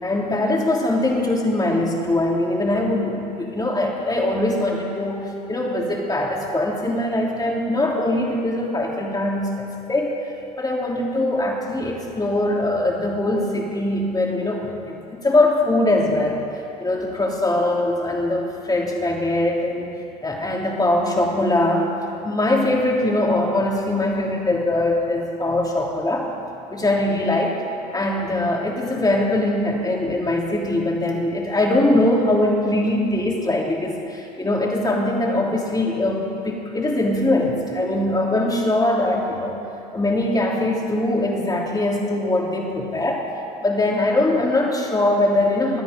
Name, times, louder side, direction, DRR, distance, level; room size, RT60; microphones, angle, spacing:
voice 1, 0.0-10.2 10.6-16.5 16.8-20.0 20.2-21.9 22.2-26.3 26.7-27.6 27.9-39.6 39.9-43.3 43.6-45.8, left 1 dB, 20° left, -1 dB, 3.1 m, -22 dB
22.5 x 9.4 x 5.2 m, 2.8 s
hypercardioid pair, 70°, 21 cm